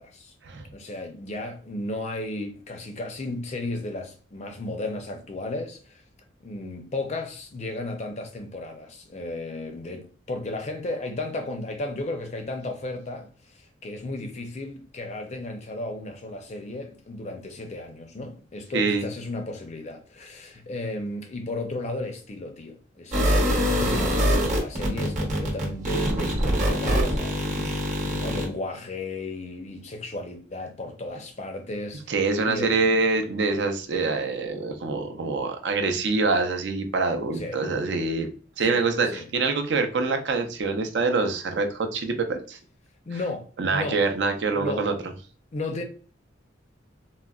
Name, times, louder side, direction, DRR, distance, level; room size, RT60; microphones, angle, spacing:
voice 1, 0.0-0.3 0.7-6.0 6.4-33.0 37.3-37.8 38.6-39.3 43.1-44.0 44.5-45.1 45.5-45.8, left 2 dB, 35° left, 0.5 m, -34 dB
voice 2, 18.7-19.0 32.1-38.3 38.6-42.6 43.6-44.9, right 3 dB, 65° right, 0.5 m, -25 dB
sound 1, 23.1-28.5, equal, 40° right, 0.9 m, -24 dB
3.7 x 2.1 x 2.3 m
head